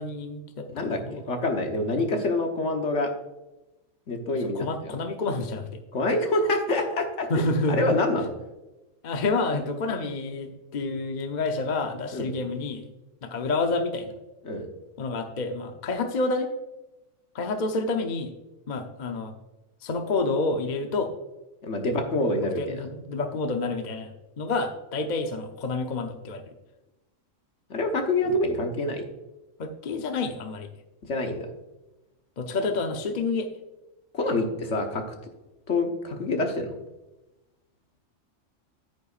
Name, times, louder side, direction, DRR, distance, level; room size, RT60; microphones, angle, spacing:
voice 1, 0.0-1.2 4.5-5.6 7.3-8.0 9.0-12.8 13.2-14.1 15.0-16.5 17.3-18.3 18.7-19.3 19.8-21.1 22.6-26.4 29.6-30.7 32.4-33.5, left 3 dB, 40° left, 5 dB, 0.8 m, -28 dB
voice 2, 0.7-3.1 4.1-4.9 5.9-7.3 7.7-8.3 12.1-12.3 14.4-14.6 21.6-22.8 27.7-29.0 31.1-31.5 34.1-35.0 35.7-36.7, left 2 dB, 60° left, 4 dB, 1.5 m, -26 dB
10.0 x 9.0 x 2.5 m, 1.0 s
omnidirectional pair, 1.4 m